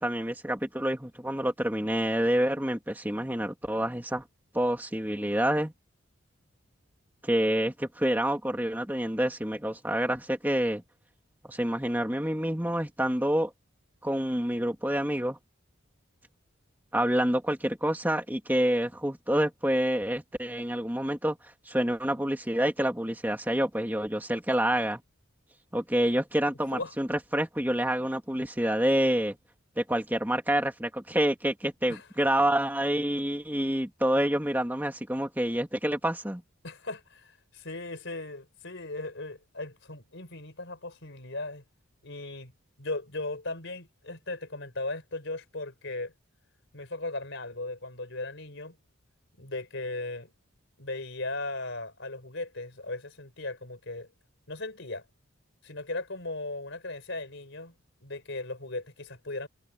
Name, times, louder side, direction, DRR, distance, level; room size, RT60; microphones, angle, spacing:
voice 1, 0.0-4.2 4.5-5.7 7.2-10.8 11.5-13.5 14.0-15.4 16.9-21.4 21.7-25.0 25.7-29.4 29.8-36.4, right 1 dB, 10° right, 2.3 m, -27 dB
voice 2, 36.6-41.6 42.0-42.5 42.8-46.1 46.7-48.7 49.4-50.3 50.8-54.1 54.5-55.0 55.6-57.7 58.0-59.5, left 2 dB, 60° left, 4.5 m, -37 dB
head